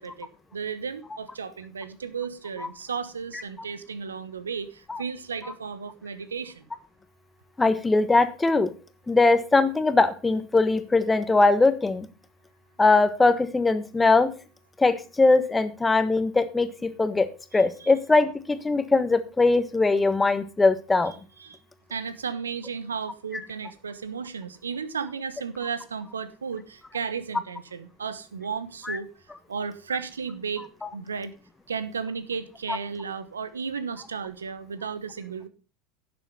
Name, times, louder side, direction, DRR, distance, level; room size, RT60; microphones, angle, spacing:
voice 1, 0.0-6.7 17.8-17.9 21.1-21.6 21.9-29.1 29.5-30.6 30.9-31.3 31.7-35.5, right 6 dB, 85° right, 13 dB, 1.0 m, -34 dB
voice 2, 7.6-8.7 9.1-12.1 12.8-14.3 14.8-21.1 28.9-29.0, left 3 dB, 15° left, 12 dB, 1.3 m, -21 dB
11.0 x 7.1 x 5.5 m, 0.35 s
hypercardioid pair, 80°, 0 cm